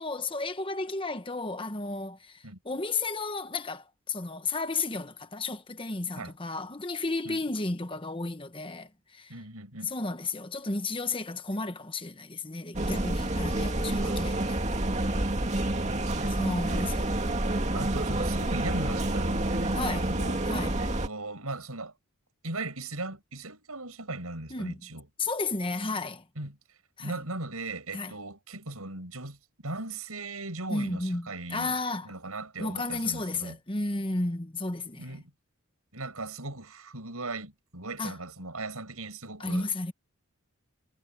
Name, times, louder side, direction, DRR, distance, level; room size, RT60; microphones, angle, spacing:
voice 1, 0.0-9.3 9.8-14.8 16.3-17.1 19.7-20.1 20.5-20.8 24.5-24.8 25.2-26.2 27.0-27.2 27.9-28.1 30.7-32.1 32.6-35.2 38.0-38.1 39.4-39.9, left 3 dB, 25° left, 1.3 m, -33 dB
voice 2, 9.3-9.9 14.0-14.4 15.5-16.3 16.7-16.9 17.7-20.4 20.8-21.9 22.4-25.1 26.4-26.6 27.0-29.4 29.6-31.7 32.0-33.6 35.0-35.3 35.9-39.7, right 2 dB, 90° right, 7.1 m, -38 dB
sound 1, 12.7-21.1, right 1 dB, 30° right, 2.4 m, -28 dB
head